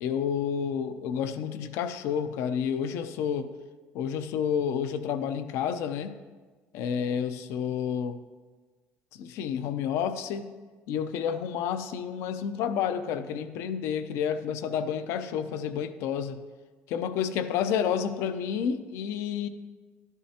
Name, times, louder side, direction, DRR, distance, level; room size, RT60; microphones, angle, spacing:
voice 1, 0.0-3.5 3.9-6.2 6.7-8.2 9.2-10.5 10.9-16.4 16.9-19.5, left 8 dB, 75° left, 11 dB, 0.6 m, -30 dB
12.5 x 11.0 x 2.9 m, 1.4 s
cardioid pair, 140°, 5 cm